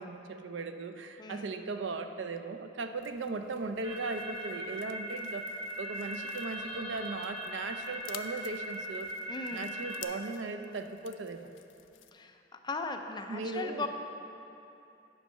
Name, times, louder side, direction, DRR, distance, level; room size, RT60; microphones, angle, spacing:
voice 1, 0.0-5.5 5.8-9.1 9.5-11.5 13.3-13.9, right 3 dB, 75° right, 7 dB, 0.5 m, -38 dB
voice 2, 1.2-1.5 9.3-9.7 12.1-13.9, left 3 dB, 25° left, 5 dB, 0.4 m, -38 dB
sound 1, 3.0-12.1, left 11 dB, 80° left, 0.4 m, -53 dB
sound 2, 3.8-10.0, equal, 20° right, 1.3 m, -39 dB
9.6 x 5.4 x 5.5 m, 2.8 s
head